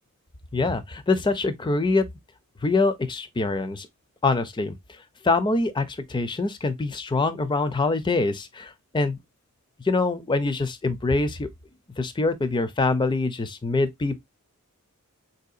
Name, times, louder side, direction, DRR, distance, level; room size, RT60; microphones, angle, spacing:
voice 1, 0.5-2.1 2.6-3.9 4.2-4.7 5.2-9.2 9.8-11.5 12.0-14.2, left 3 dB, 20° left, 0.4 m, -24 dB
4.3 x 2.7 x 2.4 m
head